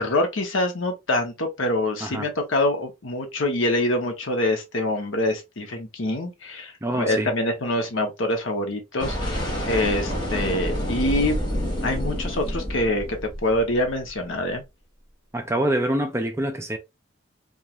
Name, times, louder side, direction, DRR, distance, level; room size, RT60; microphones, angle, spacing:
voice 1, 0.0-11.4 11.8-14.6, left 1 dB, 80° left, 0.9 m, -25 dB
voice 2, 6.8-7.3 15.3-16.8, right 1 dB, 15° right, 0.4 m, -25 dB
sound 1, 9.0-14.1, equal, 25° left, 0.9 m, -28 dB
2.4 x 2.4 x 2.9 m
head